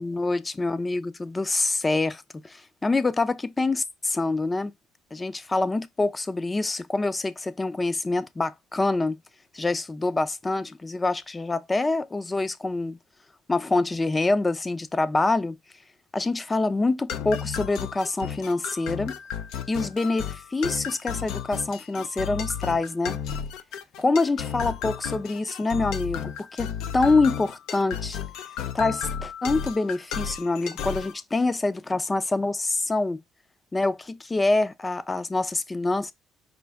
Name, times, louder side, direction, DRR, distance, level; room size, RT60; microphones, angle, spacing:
voice 1, 0.0-4.7 5.1-9.2 9.5-13.0 13.5-15.6 16.1-19.2 19.7-23.2 24.0-28.2 28.7-33.2 33.7-36.1, left 3 dB, 20° left, 0.4 m, -26 dB
sound 1, 17.1-31.2, left 8 dB, 80° left, 0.4 m, -33 dB
5.0 x 2.3 x 3.4 m
supercardioid pair, 95°, 0 cm